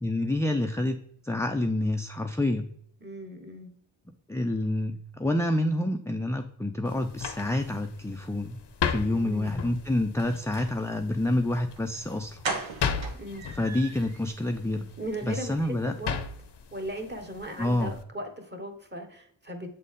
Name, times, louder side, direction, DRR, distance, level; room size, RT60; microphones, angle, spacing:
voice 1, 0.0-2.7 4.3-8.6 8.8-12.4 13.5-14.9 15.2-15.9 17.6-17.9, left 1 dB, 5° left, 5 dB, 0.4 m, -28 dB
voice 2, 3.0-3.7 9.1-9.6 13.2-13.4 15.0-16.2 16.7-19.7, right 1 dB, 20° right, 3 dB, 1.4 m, -37 dB
sound 1, 6.8-18.0, left 6 dB, 65° left, 0.7 m, -37 dB
sound 2, 11.8-11.9 12.4-14.2 14.6-14.7 15.0-15.2 15.4-15.5, right 4 dB, 85° right, 1.0 m, -35 dB
7.3 x 4.0 x 3.7 m, 0.65 s
cardioid pair, 60°, 46 cm